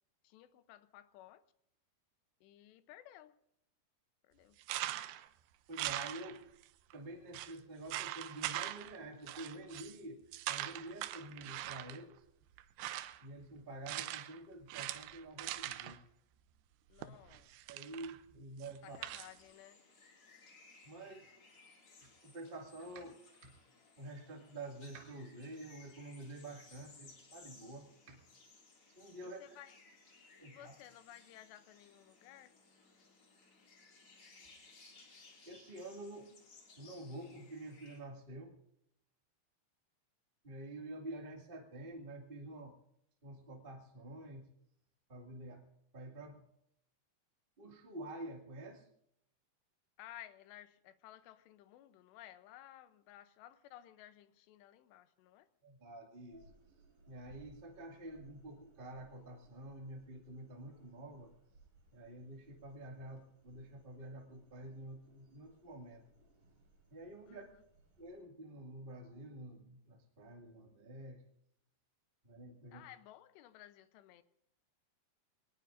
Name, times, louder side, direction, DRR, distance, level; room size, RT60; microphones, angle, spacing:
voice 1, 0.2-1.4 2.4-3.4 4.2-4.6 16.9-17.5 18.8-19.8 29.2-29.8 30.5-32.5 50.0-55.5 67.3-67.6 72.7-74.2, left 13 dB, 90° left, 12 dB, 3.0 m, -56 dB
sound 1, 4.6-5.3 5.7-6.6 6.9-7.0 7.3-7.5 7.9-9.0 9.3-10.0 10.3-12.0 12.6-13.3 13.9-14.4 14.7-16.0 17.0-18.2 18.6-19.3, right 14 dB, 80° right, 2.5 m, -41 dB
voice 2, 5.7-6.4 6.9-12.2 13.2-16.0 17.0-17.1 17.7-19.0 20.8-21.3 22.0-23.5 24.0-28.2 28.9-29.4 30.4-30.7 35.4-36.3 36.8-38.6 40.4-42.7 43.2-44.5 45.1-45.7 45.9-46.4 47.6-48.9 55.6-56.5 57.0-61.3 61.9-66.0 66.9-67.4 68.0-71.2 72.2-72.8, right 1 dB, 20° right, 1 dB, 1.3 m, -48 dB
sound 2, 18.8-38.0, left 3 dB, 35° left, 2.9 m, -62 dB
sound 3, 56.3-68.2, right 3 dB, 55° right, 5.6 m, -65 dB
23.0 x 19.5 x 2.6 m, 0.75 s
omnidirectional pair, 4.8 m